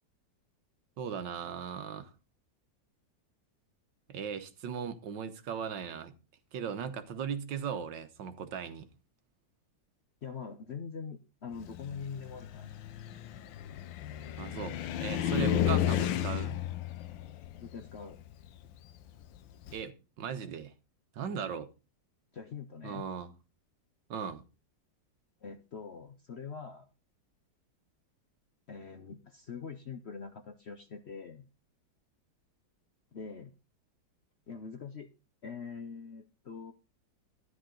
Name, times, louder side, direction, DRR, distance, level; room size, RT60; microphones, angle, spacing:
voice 1, 1.0-2.1 4.1-6.1 6.5-8.9 14.4-16.6 19.7-20.7 21.1-21.7 22.8-23.3 24.1-24.4, right 7 dB, 80° right, 1.7 m, -38 dB
voice 2, 10.2-12.8 15.3-15.8 17.6-18.2 22.3-23.0 25.4-26.9 28.7-31.5 33.1-33.5 34.5-35.1 35.4-36.7, left 5 dB, 55° left, 0.8 m, -43 dB
Car, 11.6-19.8, left 11 dB, 90° left, 1.5 m, -33 dB
13.0 x 10.0 x 3.9 m
omnidirectional pair, 2.0 m